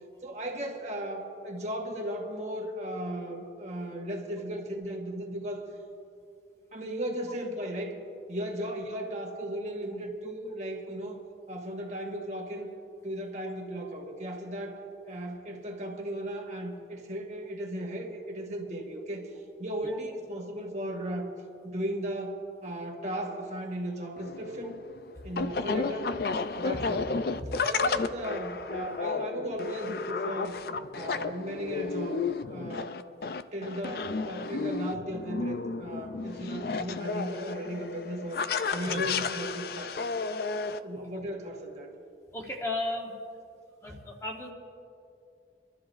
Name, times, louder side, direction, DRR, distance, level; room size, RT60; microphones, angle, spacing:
voice 1, 0.2-5.6 6.7-8.0 8.3-11.2 11.5-12.7 13.0-14.8 15.1-19.3 19.6-21.3 21.6-24.8 25.2-26.1 26.6-27.0 27.5-30.6 30.9-32.2 32.5-33.0 33.5-38.4 38.7-40.1 40.8-41.9, right 1 dB, 40° right, 0 dB, 1.3 m, -36 dB
sound 1, 24.2-40.8, left 4 dB, 60° left, 0.4 m, -32 dB
voice 2, 42.3-43.1 43.8-44.5, left 2 dB, 15° left, 0 dB, 1.1 m, -34 dB
25.5 x 13.0 x 2.6 m, 2.5 s
head